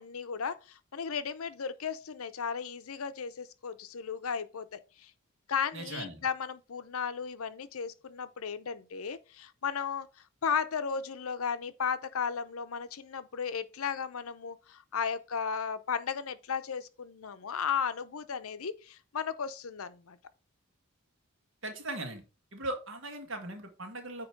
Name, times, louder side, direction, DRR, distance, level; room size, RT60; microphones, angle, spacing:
voice 1, 0.0-5.1 5.5-10.1 10.4-20.2, left 6 dB, 80° left, 0.6 m, -35 dB
voice 2, 5.7-6.3 21.6-22.2 22.5-24.3, right 2 dB, 60° right, 1.6 m, -39 dB
8.8 x 3.0 x 4.8 m
head